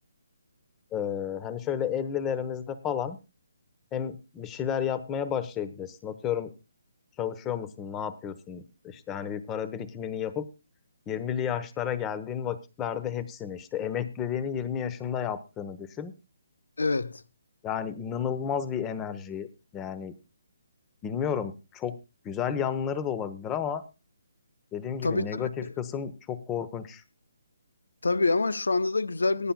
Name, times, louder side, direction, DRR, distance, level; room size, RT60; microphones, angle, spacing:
voice 1, 0.9-3.2 3.9-6.5 7.2-10.5 11.1-16.1 17.6-20.2 21.0-22.0 22.2-23.8 24.7-27.0, left 8 dB, 15° left, 1.1 m, -32 dB
voice 2, 16.8-17.2 25.0-25.7 28.0-29.5, left 3 dB, 75° left, 0.7 m, -26 dB
21.0 x 10.0 x 2.3 m
figure-of-eight pair, 140°, 0 cm